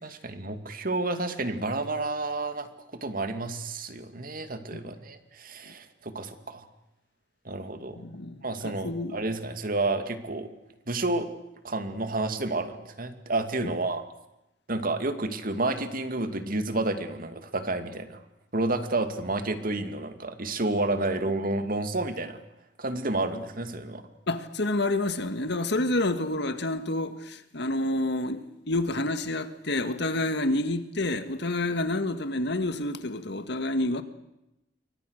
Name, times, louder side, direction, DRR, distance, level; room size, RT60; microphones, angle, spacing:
voice 1, 0.0-2.7 3.0-6.7 7.4-8.0 8.4-10.5 10.9-11.3 11.6-14.0 14.7-18.2 18.5-22.4 22.8-24.0, right 2 dB, 50° right, 2.4 m, -30 dB
voice 2, 8.0-9.2 13.6-13.7 24.3-34.0, left 2 dB, 65° left, 1.9 m, -29 dB
28.0 x 24.0 x 6.6 m
head